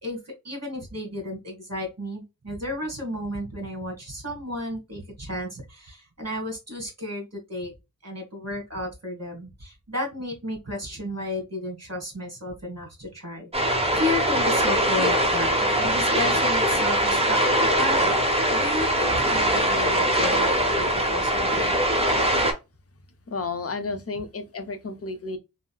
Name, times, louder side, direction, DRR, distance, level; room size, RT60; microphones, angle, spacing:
voice 1, 0.0-7.7 8.0-15.5 15.8-17.4 17.7-18.2 18.5-21.7, left 1 dB, 45° right, 1.6 m, -33 dB
sound 1, 13.5-22.5, right 1 dB, 15° right, 0.8 m, -22 dB
voice 2, 23.3-25.4, left 3 dB, 40° left, 0.6 m, -32 dB
3.7 x 2.0 x 2.3 m
wide cardioid pair, 60°, 35 cm